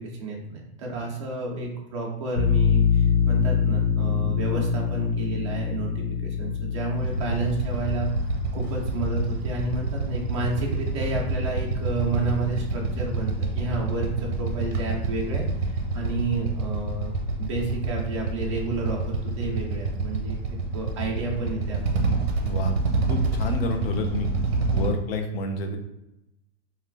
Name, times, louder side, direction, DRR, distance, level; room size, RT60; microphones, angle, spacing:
voice 1, 0.0-8.1 8.5-17.1 17.4-20.4 20.7-22.1, right 3 dB, 30° right, -2 dB, 0.4 m, -30 dB
sound 1, 2.4-13.7, left 7 dB, 85° left, 1.3 m, -27 dB
Motorcycle / Idling, 7.0-24.9, right 3 dB, 60° right, 0.7 m, -27 dB
voice 2, 22.4-22.7 23.1-24.3 24.7-25.8, left 1 dB, 55° left, 5 dB, 0.6 m, -28 dB
2.8 x 2.4 x 3.3 m, 0.90 s
supercardioid pair, 180°, 34 cm